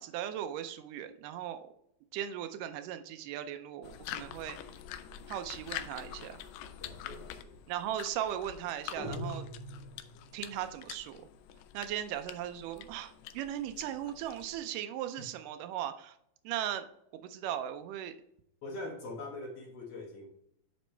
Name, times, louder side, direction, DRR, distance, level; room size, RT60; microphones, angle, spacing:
voice 1, 0.0-1.7 2.1-4.6 5.3-6.4 7.7-9.5 10.3-11.2 11.7-16.2 16.4-16.9 17.1-18.1, right 11 dB, 85° right, 9 dB, 2.2 m, -38 dB
sound 1, 3.8-14.7, left 10 dB, 90° left, 2.2 m, -46 dB
voice 2, 6.8-7.6 15.2-15.3 18.6-20.3, left 2 dB, 60° left, 0 dB, 2.0 m, -43 dB
sound 2, 8.9-10.4, equal, 60° right, 3.7 m, -40 dB
8.1 x 5.3 x 3.3 m, 0.74 s
omnidirectional pair, 3.7 m